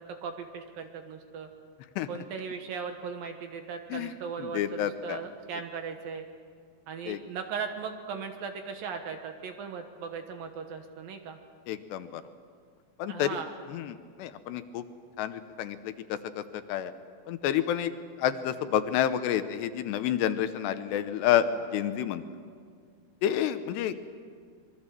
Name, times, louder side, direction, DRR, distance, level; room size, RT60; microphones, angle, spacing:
voice 1, 0.0-1.5 2.1-6.3 6.9-11.4 13.1-13.5, right 6 dB, 65° right, 6 dB, 2.7 m, -38 dB
voice 2, 4.4-5.2 7.1-7.2 11.7-12.2 13.0-13.3 13.7-14.8 15.2-16.9 17.3-17.9 18.2-21.5 21.7-22.2 23.2-23.9, left 11 dB, 80° left, 11 dB, 3.0 m, -29 dB
25.5 x 22.5 x 7.6 m, 2.1 s
omnidirectional pair, 5.1 m